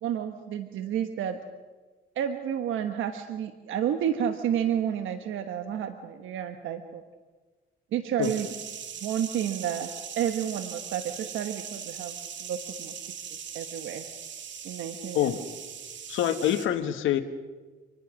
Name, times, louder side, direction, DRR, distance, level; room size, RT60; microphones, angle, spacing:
voice 1, 0.0-1.4 2.1-7.0 7.9-8.5 9.0-9.9 10.2-13.0 13.5-14.1 14.6-15.4, right 9 dB, 85° right, 8 dB, 1.2 m, -30 dB
sound 1, 8.2-16.7, right 8 dB, 65° right, 2.3 m, -40 dB
voice 2, 16.1-17.2, left 11 dB, 85° left, 7 dB, 1.5 m, -25 dB
26.5 x 19.5 x 6.3 m, 1.3 s
cardioid pair, 90°, 20 cm